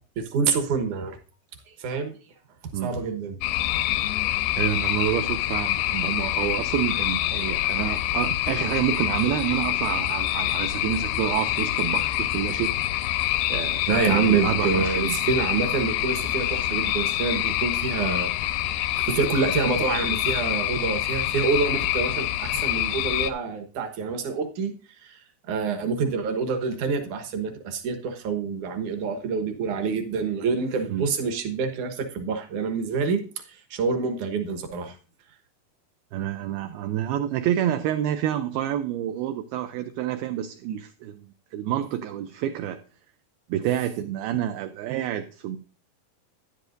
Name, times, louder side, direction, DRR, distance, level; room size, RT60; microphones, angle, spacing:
voice 1, 0.2-1.2 1.8-2.1 2.8-3.4 13.9-18.8 19.0-24.7 25.0-25.2 25.5-33.2 33.7-34.9, right 5 dB, 65° right, 6 dB, 2.1 m, -27 dB
sound 1, 3.4-23.3, left 14 dB, 80° left, 2.4 m, -26 dB
voice 2, 4.6-13.0 13.5-15.2 30.9-31.1 36.1-41.2 41.5-42.8 43.5-45.6, right 11 dB, 85° right, 8 dB, 2.2 m, -28 dB
13.0 x 10.5 x 2.6 m, 0.38 s
omnidirectional pair, 5.0 m